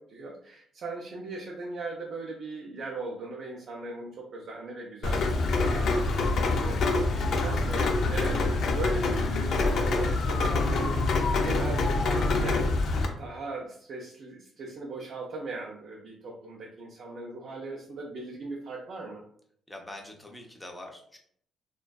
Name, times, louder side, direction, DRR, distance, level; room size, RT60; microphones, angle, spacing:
voice 1, 0.0-11.1 11.4-12.6 13.2-19.2, right 2 dB, 60° right, -1 dB, 0.4 m, -39 dB
Rain, 5.0-13.0, left 3 dB, 65° left, 0.4 m, -26 dB
voice 2, 7.1-7.4 19.7-21.2, left 1 dB, 10° left, 2 dB, 0.5 m, -44 dB
2.5 x 2.2 x 2.2 m, 0.64 s
cardioid pair, 90°, 0 cm